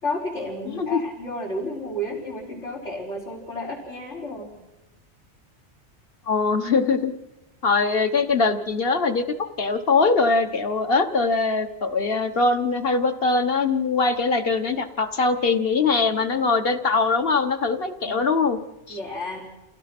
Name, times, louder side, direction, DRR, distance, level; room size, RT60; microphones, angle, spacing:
voice 1, 0.0-4.5 18.0-18.2 18.9-19.5, left 1 dB, 85° left, -6 dB, 4.7 m, -32 dB
voice 2, 6.3-7.1 7.6-18.6 18.9-19.0, left 4 dB, 55° left, 8 dB, 1.5 m, -22 dB
28.0 x 16.5 x 6.1 m, 0.98 s
omnidirectional pair, 1.2 m